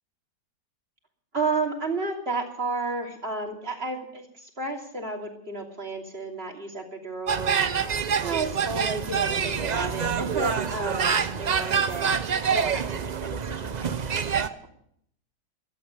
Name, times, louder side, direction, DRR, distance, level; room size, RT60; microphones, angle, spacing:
voice 1, 1.3-7.7 8.2-12.1 12.5-14.5, right 3 dB, 35° right, 2 dB, 3.1 m, -32 dB
sound 1, 7.3-14.5, right 6 dB, 75° right, 0.4 m, -26 dB
16.5 x 12.0 x 6.6 m, 0.68 s
omnidirectional pair, 1.8 m